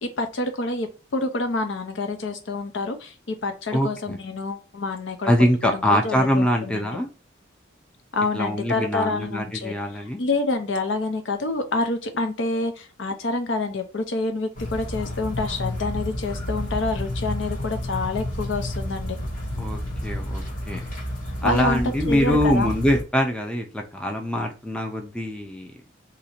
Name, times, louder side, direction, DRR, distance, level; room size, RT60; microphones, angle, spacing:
voice 1, 0.0-5.3 5.6-6.8 8.1-19.2 21.4-22.7, left 3 dB, 70° left, 7 dB, 0.6 m, -27 dB
voice 2, 3.7-4.2 5.2-7.1 8.3-10.2 19.6-20.8 21.4-25.7, equal, 5° left, 3 dB, 0.5 m, -23 dB
sound 1, 14.5-23.0, left 1 dB, 45° left, 1.6 m, -30 dB
2.9 x 2.6 x 4.3 m, 0.33 s
head